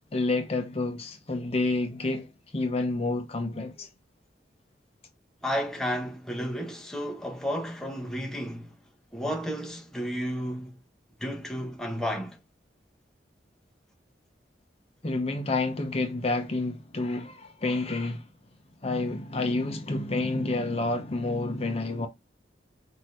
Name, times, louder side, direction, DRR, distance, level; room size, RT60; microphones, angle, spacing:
voice 1, 0.1-3.9 15.0-18.3 18.8-22.1, left 2 dB, 35° left, 0.7 m, -29 dB
voice 2, 5.4-8.7 9.1-10.8 11.2-12.4, equal, 5° left, 0.9 m, -32 dB
5.9 x 2.7 x 3.1 m
head